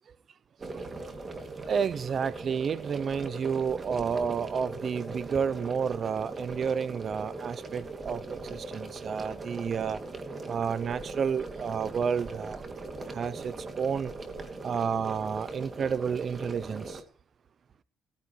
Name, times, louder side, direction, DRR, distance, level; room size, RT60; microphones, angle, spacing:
sound 1, 0.6-17.0, right 3 dB, 35° right, 2.7 m, -40 dB
voice 1, 1.7-10.0 10.5-12.6 13.0-14.1 14.6-17.0, right 6 dB, 50° right, 0.7 m, -30 dB
19.5 x 14.5 x 3.3 m
cardioid pair, 90°, 0 cm